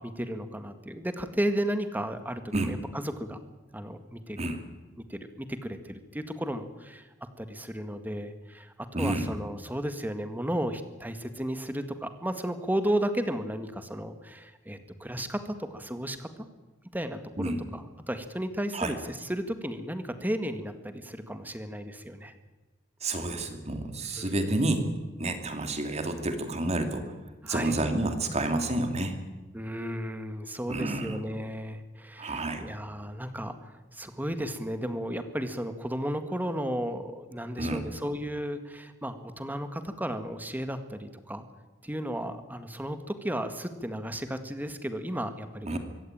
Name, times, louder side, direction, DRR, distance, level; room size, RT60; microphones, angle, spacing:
voice 1, 0.0-3.4 3.7-4.4 5.1-16.3 16.9-22.3 24.2-24.5 27.4-27.8 29.5-41.4 41.8-45.8, equal, 10° right, 9 dB, 1.8 m, -34 dB
voice 2, 8.9-9.3 17.4-17.6 18.7-18.9 23.0-24.8 25.2-27.1 27.4-29.1 30.7-31.2 32.2-32.7 37.6-37.8 45.6-45.8, right 2 dB, 35° right, 6 dB, 2.8 m, -29 dB
24.5 x 16.0 x 9.0 m, 1.2 s
head